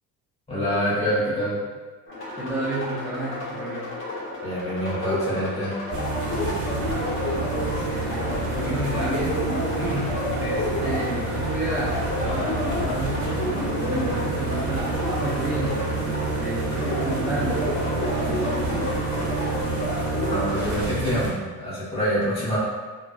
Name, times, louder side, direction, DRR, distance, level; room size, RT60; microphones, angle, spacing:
voice 1, 0.5-1.6 4.4-5.7 20.2-22.6, equal, 15° left, -10 dB, 1.4 m, -26 dB
sound 1, 2.1-20.7, left 1 dB, 35° left, 1.0 m, -30 dB
voice 2, 2.3-3.9 7.6-8.2 8.5-13.6 13.8-18.9, right 1 dB, 5° right, -9 dB, 0.4 m, -32 dB
sound 2, 5.9-21.3, right 3 dB, 55° right, 1.0 m, -28 dB
3.4 x 2.1 x 2.4 m, 1.4 s
cardioid pair, 125°, 36 cm